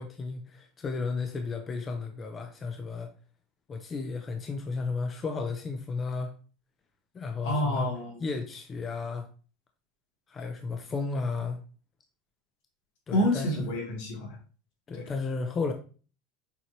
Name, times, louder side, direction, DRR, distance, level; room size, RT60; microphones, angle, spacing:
voice 1, 0.0-3.1 3.7-6.3 7.1-7.9 8.2-9.3 10.3-11.6 13.1-13.6 14.9-15.7, left 4 dB, 25° left, 5 dB, 0.7 m, -33 dB
voice 2, 7.4-8.2 13.1-14.4 14.9-15.1, left 1 dB, 80° left, -2 dB, 3.3 m, -28 dB
7.0 x 4.4 x 3.2 m, 0.36 s
supercardioid pair, 135°, 0 cm